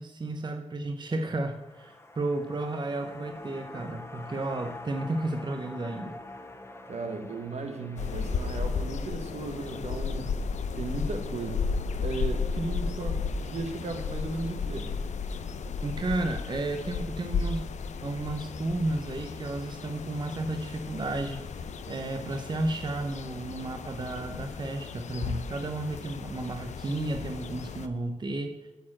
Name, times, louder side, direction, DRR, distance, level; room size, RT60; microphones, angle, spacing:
voice 1, 0.0-6.2 15.8-17.6 18.0-28.5, right 2 dB, 40° right, 5 dB, 0.7 m, -33 dB
sound 1, 1.3-11.7 12.0-12.1, left 2 dB, 20° left, 1.1 m, -46 dB
voice 2, 6.9-10.4 10.7-11.7 12.0-14.9, right 3 dB, 65° right, 6 dB, 1.3 m, -36 dB
sound 2, 8.0-27.9, left 5 dB, 75° left, 0.5 m, -34 dB
9.1 x 4.4 x 7.4 m, 1.1 s
cardioid pair, 55°, 12 cm